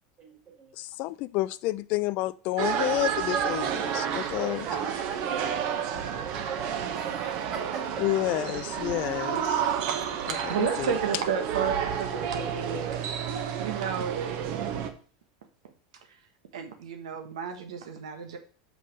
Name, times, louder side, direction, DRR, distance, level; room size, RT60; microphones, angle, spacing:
voice 1, 0.2-0.8 4.0-7.8 9.1-9.7, right 6 dB, 30° right, 3.4 m, -40 dB
voice 2, 0.7-4.7 8.0-9.6 10.3-10.9, left 17 dB, 50° left, 0.4 m, -30 dB
sound 1, 2.6-14.9, right 8 dB, 50° right, 1.1 m, -30 dB
voice 3, 9.6-13.1 13.6-14.4 16.1-16.2 16.5-18.4, right 7 dB, 90° right, 1.5 m, -32 dB
5.8 x 5.4 x 6.4 m
supercardioid pair, 135°, 3 cm